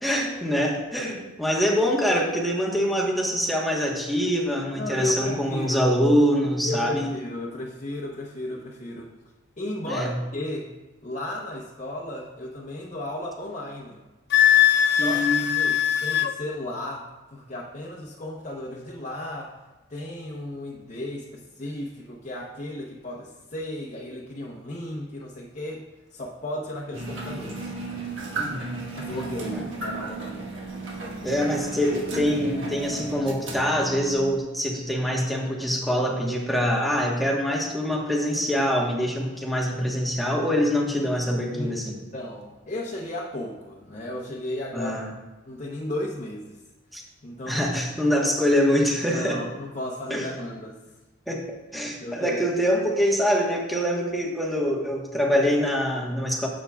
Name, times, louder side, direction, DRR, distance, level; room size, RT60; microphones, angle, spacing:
voice 1, 0.0-7.1 9.9-10.1 15.0-15.5 28.4-28.8 29.5-29.6 31.2-41.9 44.7-45.1 46.9-47.0 47.5-49.4 50.1-50.2 51.3-51.4 51.7-56.5, equal, ahead, -2 dB, 1.1 m, -24 dB
voice 2, 4.8-5.8 6.6-9.1 9.6-10.7 11.0-14.0 14.9-15.3 15.6-19.6 19.9-25.9 26.1-27.7 29.0-30.5 41.5-41.8 42.1-44.9 45.5-46.6 47.2-47.7 49.1-50.8 51.7-52.4, left 1 dB, 40° left, -3 dB, 0.8 m, -34 dB
Wind instrument woodwind instrument, 14.3-16.3, left 10 dB, 60° left, 0.5 m, -20 dB
sound 1, 26.9-34.4, right 3 dB, 75° right, 1.3 m, -34 dB
11.5 x 7.3 x 2.3 m, 1.1 s
head